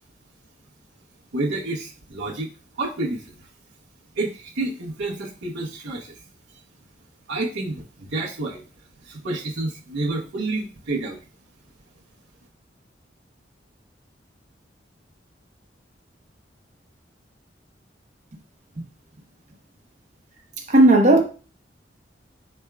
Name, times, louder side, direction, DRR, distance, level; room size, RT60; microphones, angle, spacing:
voice 1, 1.3-2.5 2.8-3.3 4.1-6.2 7.3-8.6 9.0-11.2, right 2 dB, 80° right, 0.7 m, -29 dB
voice 2, 20.7-21.2, right 2 dB, 40° right, 0.9 m, -13 dB
4.8 x 4.2 x 2.2 m
head